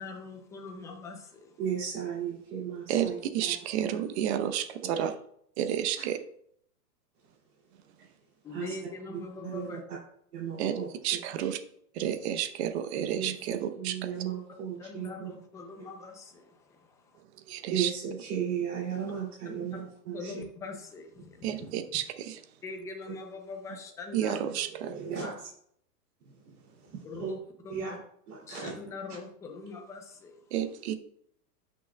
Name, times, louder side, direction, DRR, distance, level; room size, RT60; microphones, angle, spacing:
voice 1, 0.0-1.6 5.0-5.1 8.4-9.8 14.8-17.2 19.4-19.8 20.1-21.7 22.6-24.4 25.2-25.3 27.0-28.0 28.5-30.4, left 3 dB, 5° left, 2 dB, 0.5 m, -43 dB
voice 2, 1.6-3.2 3.8-4.0 4.3-4.4 4.8-4.9 8.5-8.7 9.4-9.8 10.3-10.9 13.1-15.3 17.7-20.3 24.8-25.4 27.2-27.3 27.7-27.9 28.3-28.7, right 8 dB, 65° right, -3 dB, 3.0 m, -35 dB
voice 3, 2.9-5.1 5.6-6.2 10.6-10.8 11.0-11.6 12.0-14.1 17.5-17.9 21.4-22.4 24.1-24.9 30.5-30.9, right 10 dB, 40° right, 9 dB, 0.9 m, -31 dB
12.0 x 6.2 x 2.3 m, 0.68 s
hypercardioid pair, 140°, 49 cm